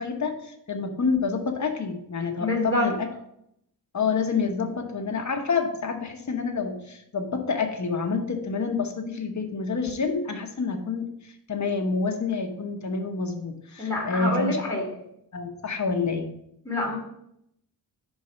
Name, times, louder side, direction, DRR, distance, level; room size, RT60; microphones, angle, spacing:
voice 1, 0.0-3.1 3.9-11.1 11.5-14.7 15.3-16.3, left 4 dB, 45° left, 4 dB, 1.1 m, -28 dB
voice 2, 2.4-2.9 13.8-14.9 16.6-17.0, left 1 dB, 5° left, -5 dB, 2.6 m, -26 dB
5.4 x 4.6 x 5.5 m, 0.75 s
wide cardioid pair, 80°, 41 cm